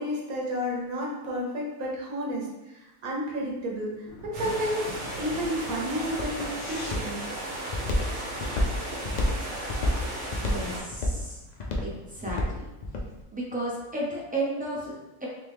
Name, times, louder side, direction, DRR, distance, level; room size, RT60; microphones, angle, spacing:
voice 1, 0.0-4.9 5.2-7.2, equal, 85° right, -2 dB, 1.4 m, -31 dB
Thunder, 3.4-8.9, right 1 dB, 40° left, 1.6 m, -46 dB
sound 1, 4.3-10.8, right 1 dB, 60° right, 1.6 m, -35 dB
Walk footsteps, 4.9-13.1, left 1 dB, 90° left, 0.3 m, -29 dB
voice 2, 10.3-11.4 11.8-12.6 13.3-15.3, right 1 dB, 10° right, -5 dB, 0.6 m, -33 dB
3.3 x 3.1 x 3.4 m, 1.0 s
omnidirectional pair, 1.5 m